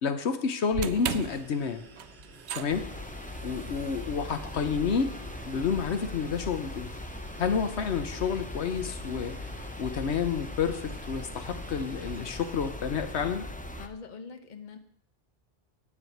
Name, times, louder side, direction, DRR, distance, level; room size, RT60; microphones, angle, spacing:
voice 1, 0.0-1.8 2.5-2.9 3.4-5.1 5.5-6.9 7.4-9.5 9.8-13.4, left 6 dB, 80° left, 9 dB, 1.1 m, -29 dB
sound 1, 0.7-7.0, right 9 dB, 80° right, 0.9 m, -40 dB
sound 2, 1.2-12.7, right 2 dB, 65° right, 2.5 m, -53 dB
sound 3, 2.7-13.9, left 1 dB, 10° left, 0.5 m, -40 dB
voice 2, 13.8-14.8, left 5 dB, 45° left, 7 dB, 1.1 m, -43 dB
8.7 x 7.2 x 8.5 m, 0.71 s
omnidirectional pair, 1.1 m